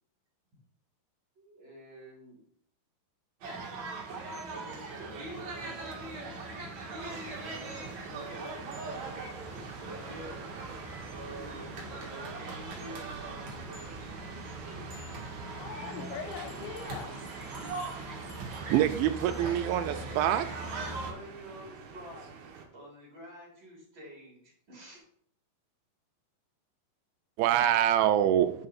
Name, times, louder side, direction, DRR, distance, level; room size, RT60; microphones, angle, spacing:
voice 1, 1.4-2.4 4.3-5.8 7.7-8.7 9.7-10.5 11.0-13.8 20.2-25.0, right 1 dB, 30° right, -4 dB, 3.1 m, -48 dB
sound 1, 3.4-21.1, right 3 dB, 50° right, 2.5 m, -40 dB
sound 2, 7.0-22.7, right 5 dB, 65° right, 2.7 m, -47 dB
voice 2, 15.4-17.5, left 7 dB, 75° left, 5 dB, 3.1 m, -42 dB
Bell, 16.3-19.0 19.3-19.5 19.8-19.9 20.3-20.4 20.7-20.8, left 3 dB, 40° left, 2.8 m, -58 dB
voice 3, 18.7-20.5 27.4-28.5, right 11 dB, 85° right, 9 dB, 2.9 m, -25 dB
10.5 x 5.3 x 4.2 m, 0.64 s
omnidirectional pair, 5.5 m